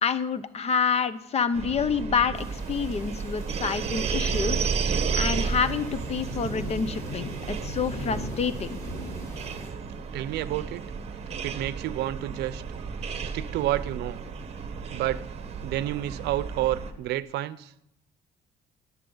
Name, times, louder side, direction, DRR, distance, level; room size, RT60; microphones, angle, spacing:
voice 1, 0.0-8.8, left 6 dB, 40° left, 14 dB, 0.8 m, -28 dB
sound 1, 1.5-16.9, right 5 dB, 40° right, 1.3 m, -32 dB
sound 2, 2.3-9.7, left 1 dB, 15° left, 3.6 m, -40 dB
voice 2, 10.1-10.8 11.4-12.6 13.3-14.2 14.9-15.2 15.6-17.7, right 14 dB, 80° right, 16 dB, 0.6 m, -29 dB
21.5 x 7.4 x 3.9 m, 0.79 s
cardioid pair, 110°, 17 cm